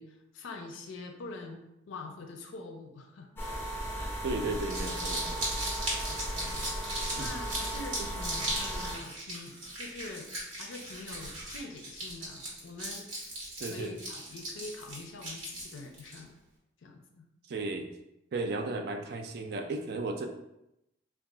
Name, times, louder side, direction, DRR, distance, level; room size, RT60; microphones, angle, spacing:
voice 1, 0.0-3.5 3.9-4.2 6.3-6.7 7.1-10.3 10.6-13.3 13.6-16.4 16.8-17.2, left 3 dB, 85° left, 4 dB, 0.4 m, -45 dB
sound 1, 3.4-9.0, right 1 dB, 10° left, 0.5 m, -36 dB
voice 2, 4.2-5.4 7.2-7.3 13.6-13.9 17.5-17.9 18.3-20.3, right 3 dB, 55° right, 5 dB, 0.3 m, -34 dB
Crumpling crinkling, 4.5-16.2, right 1 dB, 90° right, 1.2 m, -38 dB
2.3 x 2.2 x 3.7 m, 0.86 s
head